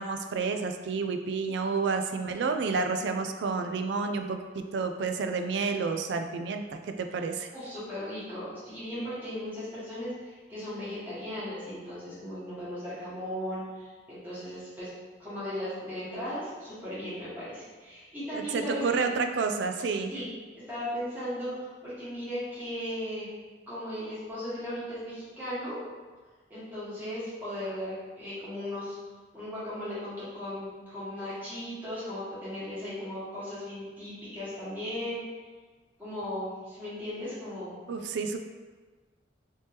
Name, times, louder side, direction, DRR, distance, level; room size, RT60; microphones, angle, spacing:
voice 1, 0.0-7.5 18.3-20.1 37.9-38.4, right 4 dB, 70° right, 6 dB, 0.3 m, -30 dB
voice 2, 7.5-14.9 15.2-19.1 20.1-20.2 20.5-23.3 23.7-25.8 26.5-29.0 29.3-35.2 36.0-37.7, left 1 dB, 10° right, -11 dB, 1.4 m, -37 dB
3.3 x 3.1 x 2.9 m, 1.4 s
head